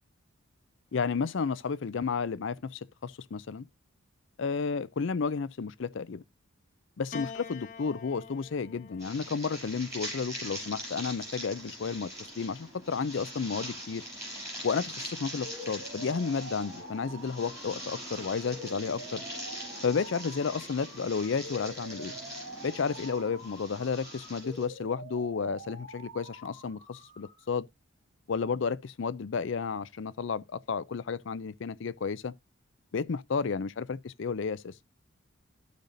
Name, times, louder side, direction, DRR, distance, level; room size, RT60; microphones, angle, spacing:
voice 1, 0.9-3.7 4.4-6.2 7.0-14.0 14.6-19.2 19.8-22.1 22.6-27.7 28.3-32.3 32.9-34.7, left 5 dB, 60° left, 0.4 m, -32 dB
Piano, 7.1-11.6 12.6-13.4, left 5 dB, 35° left, 1.1 m, -47 dB
sound 1, 9.0-24.6, equal, 15° right, 5.5 m, -42 dB
sound 2, 15.4-27.4, equal, 65° right, 3.3 m, -47 dB
13.0 x 5.2 x 2.6 m
head